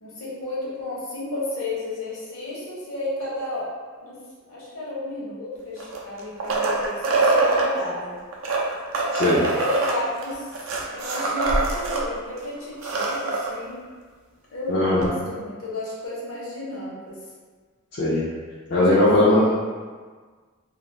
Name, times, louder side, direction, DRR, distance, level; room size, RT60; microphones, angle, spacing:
voice 1, 0.0-3.7 4.0-4.2 4.5-8.2 9.3-10.6 10.9-13.8 14.5-17.2 18.7-19.6, left 2 dB, 70° left, -6 dB, 0.9 m, -32 dB
sound 1, 5.8-7.7 8.3-12.0 12.4-12.5 12.7-13.5 15.0-15.1, right 3 dB, 65° right, 0.4 m, -24 dB
voice 2, 14.7-15.1 18.0-18.2 18.7-19.6, left 1 dB, 50° left, -8 dB, 0.4 m, -18 dB
2.4 x 2.4 x 3.0 m, 1.5 s
head